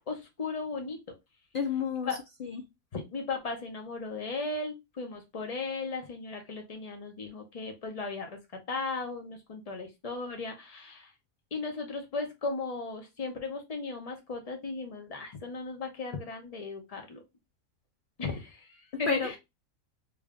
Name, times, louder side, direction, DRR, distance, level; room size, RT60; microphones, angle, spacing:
voice 1, 0.1-1.0 2.1-2.2 2.9-8.4 8.7-11.1 11.5-17.2 18.2-19.4, left 3 dB, 30° left, 0.9 m, -36 dB
voice 2, 1.5-2.7 18.9-19.4, left 6 dB, 85° left, 0.4 m, -31 dB
3.4 x 2.7 x 3.6 m
omnidirectional pair, 1.5 m